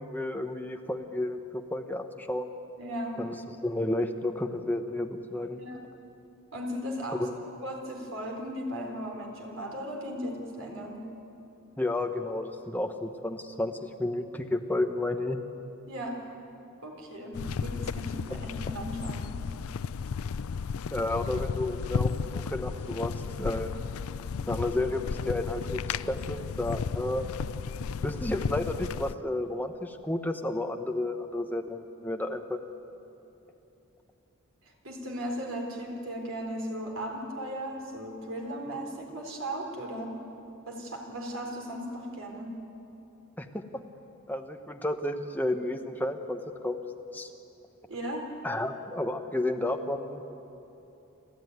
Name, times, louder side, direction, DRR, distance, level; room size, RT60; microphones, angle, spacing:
voice 1, 0.0-1.4 1.7-2.5 3.2-5.6 7.2-7.3 11.8-15.4 18.3-18.4 20.9-23.7 24.5-27.2 28.0-32.6 43.4-43.6 44.3-46.8 47.1-47.3 48.4-50.2, left 1 dB, 10° left, 5 dB, 1.0 m, -32 dB
voice 2, 2.8-3.2 5.6-5.8 6.5-7.3 7.6-11.0 15.9-16.2 16.8-19.2 34.8-40.1 40.7-42.6 47.9-48.2, equal, 65° right, 1 dB, 3.9 m, -36 dB
sound 1, 17.3-29.1, left 5 dB, 75° left, 0.4 m, -34 dB
30.0 x 13.0 x 9.5 m, 2.9 s
head